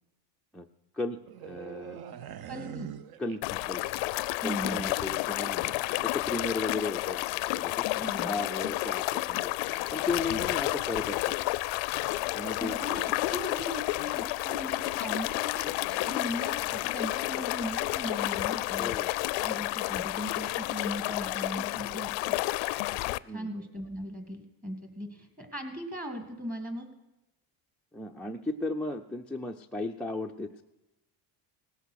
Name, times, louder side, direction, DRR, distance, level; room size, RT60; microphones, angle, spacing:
voice 1, 0.9-2.0 3.2-3.8 4.4-5.7 6.0-7.2 7.5-7.9 8.2-9.5 9.9-11.3 12.3-12.8 18.8-19.1 23.3-23.5 27.9-30.6, left 3 dB, ahead, -1 dB, 0.4 m, -35 dB
sound 1, 1.3-4.0 4.2-4.5, right 9 dB, 50° right, 0.8 m, -43 dB
voice 2, 2.5-2.9 4.4-4.9 7.9-8.4 10.3-10.4 10.7-10.8 12.6-13.0 13.3-18.9 19.4-22.4 23.3-26.9, equal, 20° right, 6 dB, 2.1 m, -38 dB
sound 2, 3.4-23.2, left 20 dB, 70° left, 0.5 m, -31 dB
17.5 x 8.1 x 6.4 m, 0.97 s
cardioid pair, 110°, 47 cm